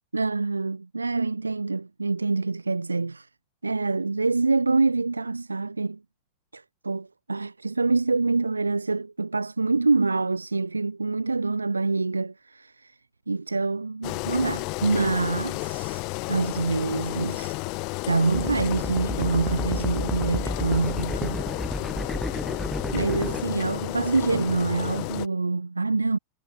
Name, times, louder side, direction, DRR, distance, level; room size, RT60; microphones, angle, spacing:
voice 1, 0.1-3.3 3.6-6.0 6.5-13.0 13.3-17.6 18.1-21.4 22.9-26.2, right 3 dB, 80° right, 0.3 m, -26 dB
Engine, 14.0-25.3, left 30 dB, 45° left, 0.6 m, -32 dB
sound 1, 18.3-23.4, left 1 dB, ahead, 0.7 m, -31 dB
figure-of-eight pair, 90°, 0 cm